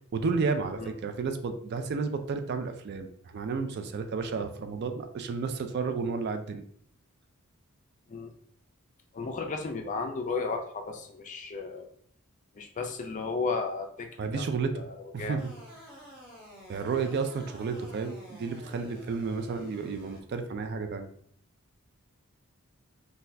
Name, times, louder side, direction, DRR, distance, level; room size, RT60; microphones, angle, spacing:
voice 1, 0.1-6.7 14.2-14.8 15.1-15.5 16.7-21.1, right 4 dB, 50° right, 7 dB, 0.3 m, -32 dB
voice 2, 9.1-11.9 12.6-14.5 14.7-15.4, left 4 dB, 35° left, 4 dB, 0.4 m, -34 dB
sound 1, 15.4-20.2, equal, 5° right, 0.9 m, -49 dB
3.9 x 2.3 x 2.6 m, 0.63 s
head